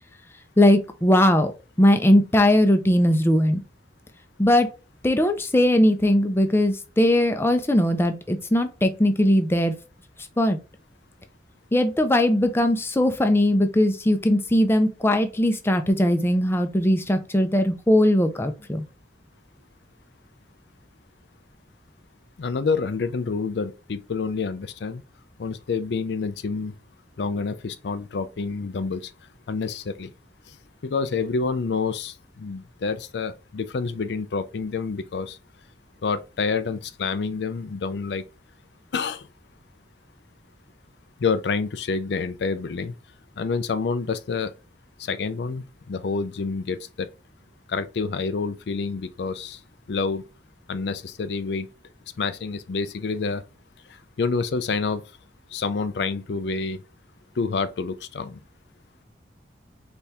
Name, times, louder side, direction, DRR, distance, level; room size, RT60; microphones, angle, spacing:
voice 1, 0.6-1.5 1.8-3.6 4.4-4.7 5.0-9.7 10.4-10.6 11.7-18.8, left 1 dB, 15° left, 0.6 m, -19 dB
voice 2, 22.4-25.0 25.4-26.7 27.2-29.1 29.5-30.1 30.8-35.4 36.0-38.2 38.9-39.3 41.2-42.9 43.4-44.5 45.0-47.1 47.7-49.6 49.9-50.2 50.7-51.7 52.2-53.4 54.2-55.0 55.5-56.8 57.4-58.4, left 4 dB, 70° left, 0.4 m, -28 dB
4.2 x 3.5 x 3.4 m
head